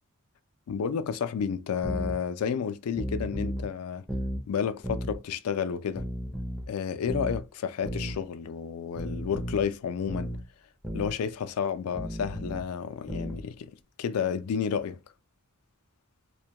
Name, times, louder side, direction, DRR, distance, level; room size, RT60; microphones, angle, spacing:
voice 1, 0.7-4.0 4.5-6.1 6.7-10.3 10.9-13.7 14.0-15.0, left 7 dB, 85° left, 0.4 m, -31 dB
sound 1, 1.8-2.2 3.0-3.7 4.1-4.4 4.8-5.2 6.0-6.7 7.1-7.4 7.8-8.2 9.0-9.7 10.1-10.4 10.8-11.1 12.0-12.6 13.1-13.4, equal, ahead, 0.5 m, -34 dB
2.2 x 2.1 x 2.7 m
head